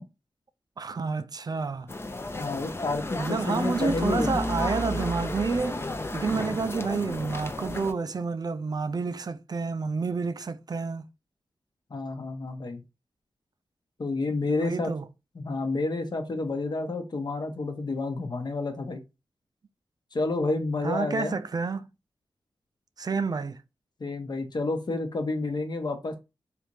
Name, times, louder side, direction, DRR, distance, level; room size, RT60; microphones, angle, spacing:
voice 1, 0.8-1.9 3.2-11.1 14.6-15.1 20.8-21.9 23.0-23.6, right 4 dB, 45° right, 0.4 m, -29 dB
sound 1, 1.9-7.9, left 1 dB, 25° left, 0.5 m, -33 dB
voice 2, 2.4-4.4 6.3-6.5 11.9-12.8 14.0-14.9 15.4-19.0 20.1-21.4 24.0-26.2, left 3 dB, 50° left, 0.8 m, -30 dB
3.4 x 2.6 x 3.1 m
cardioid pair, 40°, 9 cm